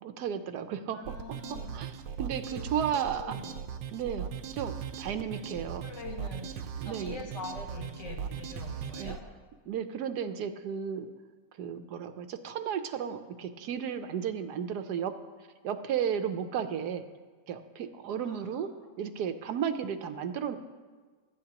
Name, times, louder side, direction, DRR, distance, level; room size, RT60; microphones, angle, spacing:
voice 1, 0.0-1.1 1.7-1.9 2.2-3.3 3.9-4.3 4.5-5.9 6.8-7.3 9.0-9.2 9.7-11.1 11.6-15.1 15.6-17.0 17.5-18.7 19.0-20.6, right 8 dB, 70° right, 8 dB, 1.2 m, -33 dB
voice 2, 0.9-1.8 2.5-2.6 2.9-3.5 5.5-6.5 6.8-9.2 18.1-18.9, left 3 dB, 65° left, -1 dB, 2.4 m, -44 dB
sound 1, 1.0-9.2, right 8 dB, 85° right, 1.4 m, -39 dB
22.5 x 9.4 x 2.9 m, 1.4 s
omnidirectional pair, 2.0 m